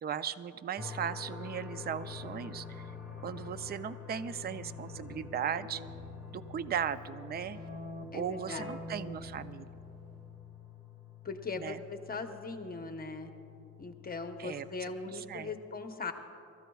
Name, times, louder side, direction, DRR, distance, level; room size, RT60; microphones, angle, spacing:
voice 1, 0.0-2.9 3.2-5.8 6.3-7.6 8.1-9.7 11.6-11.8 14.4-15.5, right 8 dB, 35° right, 14 dB, 0.4 m, -37 dB
sound 1, 0.8-15.6, left 8 dB, ahead, 1.9 m, -48 dB
Keyboard (musical), 2.0-10.4, equal, 50° right, 1.8 m, -48 dB
voice 2, 8.1-8.8 11.2-13.3 13.8-16.1, left 4 dB, 30° left, 6 dB, 0.9 m, -40 dB
27.5 x 14.0 x 2.3 m, 2.9 s
cardioid pair, 90°, 30 cm